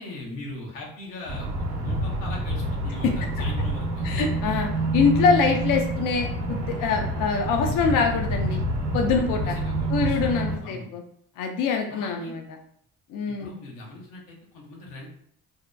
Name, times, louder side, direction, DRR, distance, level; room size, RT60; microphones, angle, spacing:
voice 1, 0.0-4.1 9.4-10.9 11.9-12.4 13.3-15.1, left 2 dB, 85° left, -2 dB, 0.7 m, -40 dB
sound 1, 1.3-10.6, right 1 dB, 70° right, 0.7 m, -27 dB
voice 2, 4.0-8.6 8.9-9.6 9.9-11.0 11.4-12.4 13.1-13.5, left 5 dB, 55° left, 2 dB, 0.5 m, -24 dB
2.7 x 2.0 x 2.2 m, 0.65 s
hypercardioid pair, 55°, 40 cm